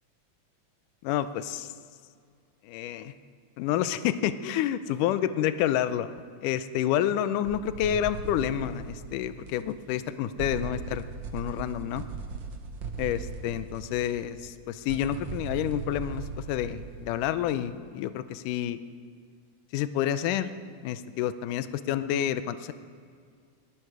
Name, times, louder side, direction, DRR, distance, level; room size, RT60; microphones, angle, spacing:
voice 1, 1.0-1.7 2.6-3.1 3.6-11.0 11.3-12.0 13.0-18.8 19.7-20.5 20.8-22.7, left 11 dB, 85° left, 13 dB, 2.2 m, -29 dB
sound 1, 7.4-10.1 10.4-17.6, right 5 dB, 60° right, 1.2 m, -39 dB
20.0 x 14.5 x 4.9 m, 2.1 s
omnidirectional pair, 3.6 m